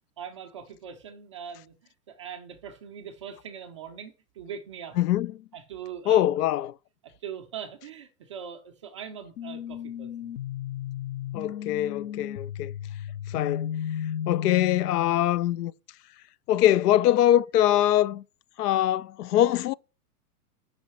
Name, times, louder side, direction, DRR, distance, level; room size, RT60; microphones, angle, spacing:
voice 1, 0.2-5.0 5.5-6.3 7.2-10.3, right 8 dB, 25° right, 0.3 m, -41 dB
voice 2, 5.0-5.3 6.1-6.7 11.3-12.7 13.3-13.7 14.3-15.7 16.5-18.2 18.6-19.7, left 12 dB, 75° left, 0.5 m, -23 dB
sound 1, 9.4-15.3, left 9 dB, 50° left, 0.8 m, -34 dB
6.2 x 5.5 x 6.0 m
hypercardioid pair, 145°, 47 cm